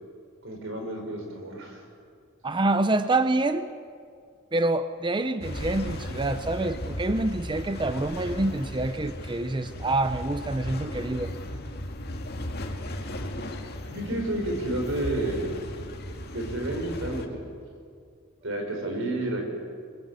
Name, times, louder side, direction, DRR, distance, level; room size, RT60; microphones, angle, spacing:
voice 1, 0.4-1.8 13.9-15.4 16.3-17.4 18.4-19.5, right 1 dB, 65° right, 3 dB, 5.3 m, -30 dB
voice 2, 2.4-3.7 4.5-11.3, right 2 dB, 20° right, 11 dB, 0.7 m, -26 dB
sound 1, 5.4-17.3, left 1 dB, 50° left, 2.1 m, -36 dB
23.5 x 22.0 x 8.3 m, 2.2 s
head